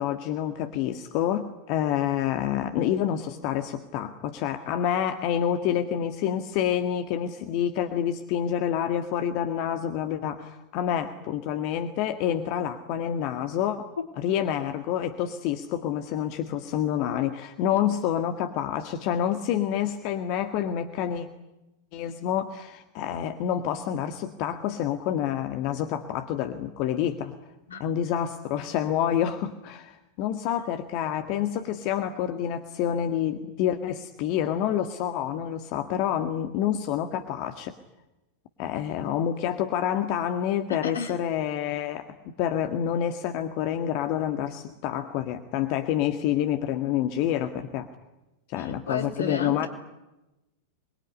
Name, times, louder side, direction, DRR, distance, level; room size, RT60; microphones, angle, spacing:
voice 1, 0.0-21.3 21.9-27.3 27.8-37.7 38.6-42.0 42.4-47.9 48.5-49.7, left 10 dB, 45° left, 7 dB, 1.8 m, -28 dB
voice 2, 40.7-41.1 48.6-49.7, left 5 dB, 70° left, 3 dB, 3.9 m, -33 dB
27.5 x 22.0 x 9.8 m, 0.97 s
figure-of-eight pair, 90°, 0 cm